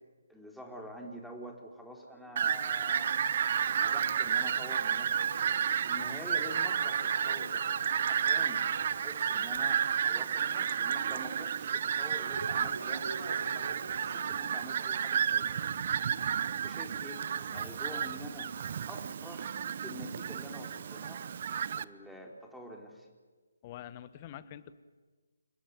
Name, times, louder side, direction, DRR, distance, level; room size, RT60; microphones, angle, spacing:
voice 1, 0.3-3.1 3.6-5.3 5.8-8.7 9.0-15.6 16.6-17.2 17.5-21.3 21.8-23.1, equal, ahead, 0 dB, 3.9 m, -47 dB
Fowl, 2.4-21.8, right 8 dB, 45° right, 0.9 m, -32 dB
sound 1, 2.4-9.9 10.2-10.6 10.9-11.0 12.3-15.0 15.4-15.6 16.3-16.4 17.3-17.4 18.1-18.2, right 1 dB, 85° right, 6.8 m, -48 dB
voice 2, 23.6-24.8, left 11 dB, 30° left, 14 dB, 1.4 m, -46 dB
30.0 x 17.5 x 9.7 m, 1.4 s
figure-of-eight pair, 150°, 0 cm